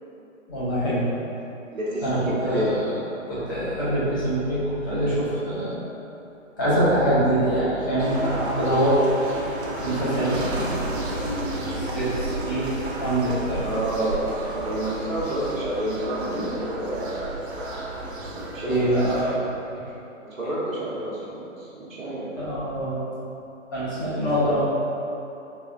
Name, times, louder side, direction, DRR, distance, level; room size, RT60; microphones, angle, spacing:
voice 1, 0.5-1.1 2.0-2.6 3.3-5.7 6.6-9.0 9.4-9.5 9.8-11.0 11.7-12.7 13.0-13.6 16.3-16.5 18.7-19.4 22.4-23.0 23.7-24.7, right 1 dB, 15° left, -10 dB, 0.5 m, -24 dB
voice 2, 1.7-2.9 13.6-17.2 17.9-18.9 20.2-22.6, right 1 dB, 80° right, -7 dB, 1.0 m, -30 dB
sound 1, 8.0-19.4, right 2 dB, 55° right, 0.7 m, -31 dB
3.6 x 3.2 x 2.4 m, 2.8 s
figure-of-eight pair, 135°, 40 cm